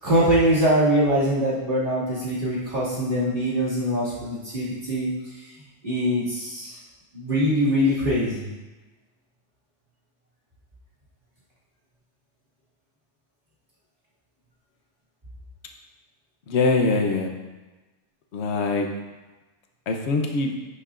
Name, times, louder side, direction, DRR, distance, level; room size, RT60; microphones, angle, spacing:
voice 1, 0.0-5.1 5.8-6.8 7.1-8.5, equal, 40° right, -10 dB, 2.5 m, -23 dB
voice 2, 16.5-17.3 18.3-18.9 19.9-20.5, left 3 dB, 60° left, 3 dB, 1.1 m, -23 dB
10.5 x 6.6 x 2.5 m, 1.2 s
omnidirectional pair, 1.3 m